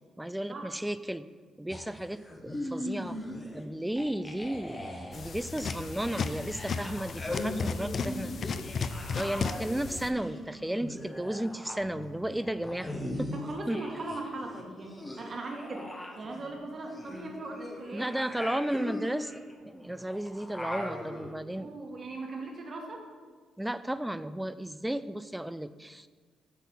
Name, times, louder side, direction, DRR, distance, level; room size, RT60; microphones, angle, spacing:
voice 1, 0.2-1.2 1.6-3.2 3.5-8.3 9.1-13.3 13.7-13.8 17.9-19.3 19.6-21.7 23.6-26.1, right 1 dB, 5° right, 14 dB, 0.4 m, -34 dB
sound 1, 1.7-3.6 3.9-14.2 14.5-21.3, left 1 dB, 15° left, 1.2 m, -40 dB
sound 2, 5.1-10.1, left 5 dB, 50° left, 0.5 m, -35 dB
voice 2, 7.4-8.1 13.3-18.2 21.6-23.1, right 2 dB, 40° right, 1 dB, 1.7 m, -40 dB
8.3 x 4.1 x 7.0 m, 1.5 s
cardioid pair, 90°, 0 cm